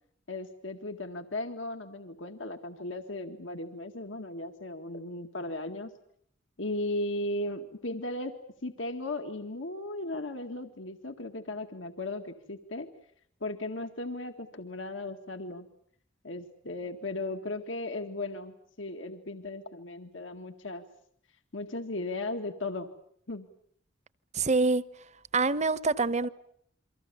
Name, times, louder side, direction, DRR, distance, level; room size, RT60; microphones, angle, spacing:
voice 1, 0.3-5.9 6.6-12.9 13.4-15.7 16.2-20.8 21.5-22.9 23.3-23.5, left 2 dB, 80° left, 1.9 m, -36 dB
voice 2, 24.3-24.9 25.3-26.3, right 3 dB, 35° right, 1.0 m, -25 dB
28.5 x 24.5 x 7.0 m
head